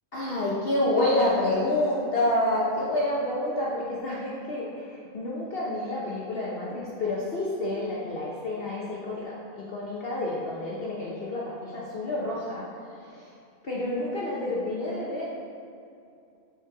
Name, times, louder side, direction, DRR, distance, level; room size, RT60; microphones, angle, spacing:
voice 1, 0.1-13.4 13.6-15.3, left 1 dB, 45° left, -6 dB, 1.1 m, -29 dB
8.0 x 4.5 x 4.8 m, 2.6 s
omnidirectional pair, 1.4 m